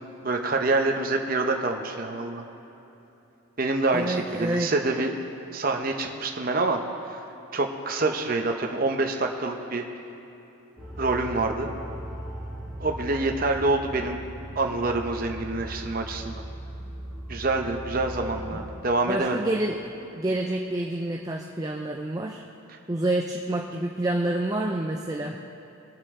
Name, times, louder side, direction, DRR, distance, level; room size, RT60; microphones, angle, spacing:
voice 1, 0.2-2.4 3.6-5.1 5.5-6.8 7.1-7.2 7.5-9.8 11.0-11.7 12.8-14.2 14.6-16.4 17.3-19.5, right 2 dB, 45° right, 3 dB, 0.8 m, -26 dB
voice 2, 3.9-4.7 18.5-18.7 19.1-19.8 20.1-22.4 22.9-25.4, right 1 dB, 15° right, 1 dB, 0.4 m, -28 dB
sound 1, 10.8-18.8, right 1 dB, 5° left, 2.1 m, -38 dB
21.0 x 7.4 x 3.7 m, 2.9 s
head